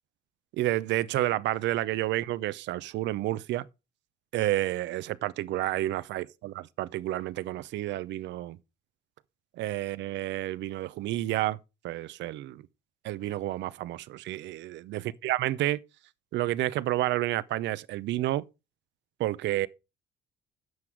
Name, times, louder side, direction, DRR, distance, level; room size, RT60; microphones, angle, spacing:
voice 1, 0.6-3.7 4.3-8.6 9.6-11.6 11.8-12.6 13.0-15.8 16.3-18.4 19.2-19.7, right 15 dB, 75° right, 0.6 m, -30 dB
9.5 x 6.1 x 4.9 m
cardioid pair, 100°, 19 cm